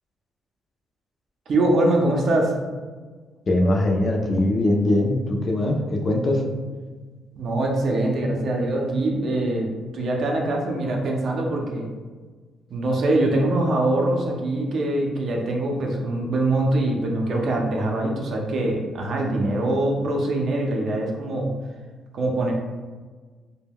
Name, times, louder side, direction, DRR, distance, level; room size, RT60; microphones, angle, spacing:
voice 1, 1.5-2.6 7.4-11.9 12.7-21.5 22.1-22.5, right 1 dB, 60° right, 0 dB, 0.5 m, -23 dB
voice 2, 3.5-6.4, left 1 dB, 40° left, 2 dB, 0.4 m, -21 dB
2.2 x 2.1 x 3.4 m, 1.4 s
cardioid pair, 90°, 0 cm